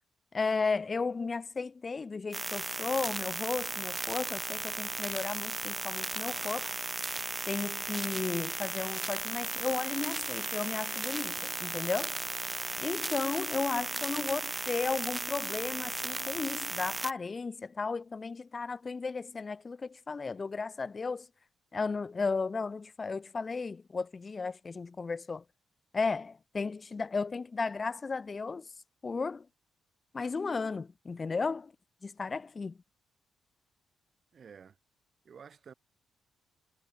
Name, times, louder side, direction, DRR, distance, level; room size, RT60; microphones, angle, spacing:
voice 1, 0.3-6.7 7.5-12.2 12.8-21.3 21.7-25.4 25.9-28.7 29.0-29.5 30.1-31.7 32.0-32.7, left 4 dB, 30° left, 0.8 m, -34 dB
sound 1, 2.3-17.1, right 2 dB, 20° right, 0.4 m, -36 dB
voice 2, 13.8-14.3 34.3-34.8 35.2-35.7, right 6 dB, 50° right, 4.3 m, -53 dB
cardioid pair, 90°, 0 cm